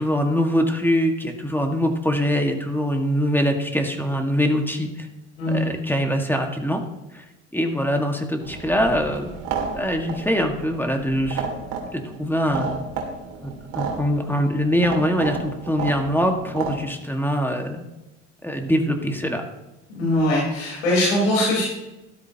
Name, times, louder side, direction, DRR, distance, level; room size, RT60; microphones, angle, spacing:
voice 1, 0.0-5.1 5.5-6.8 7.1-7.2 7.5-9.3 9.7-11.4 11.9-12.7 13.4-17.8 18.4-19.4, equal, 5° left, 3 dB, 1.8 m, -23 dB
sound 1, 8.4-16.7, right 5 dB, 60° right, 2.7 m, -32 dB
voice 2, 19.9-21.6, left 1 dB, 85° left, -6 dB, 4.3 m, -21 dB
13.0 x 12.5 x 3.0 m, 0.99 s
hypercardioid pair, 65°, 35 cm